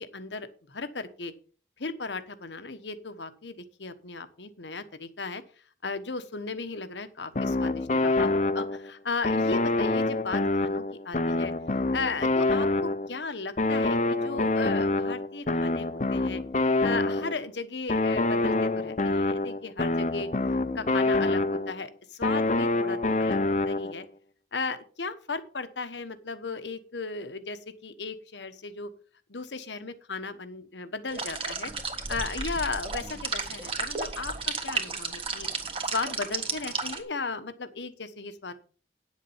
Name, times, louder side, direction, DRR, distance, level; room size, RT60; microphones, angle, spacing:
voice 1, 0.0-1.3 1.8-5.4 5.8-11.5 11.9-16.4 16.8-20.3 20.7-21.9 22.2-23.4 23.7-24.0 24.5-28.9 29.3-31.7 32.1-35.5 35.9-38.5, left 4 dB, 85° left, 10 dB, 1.2 m, -36 dB
sound 1, 7.3-8.9 9.2-13.2 13.6-17.5 17.9-21.8 22.2-24.0, left 2 dB, 40° left, 0.6 m, -26 dB
sound 2, 31.1-37.0, right 4 dB, 30° right, 1.5 m, -33 dB
10.0 x 7.4 x 5.6 m, 0.40 s
head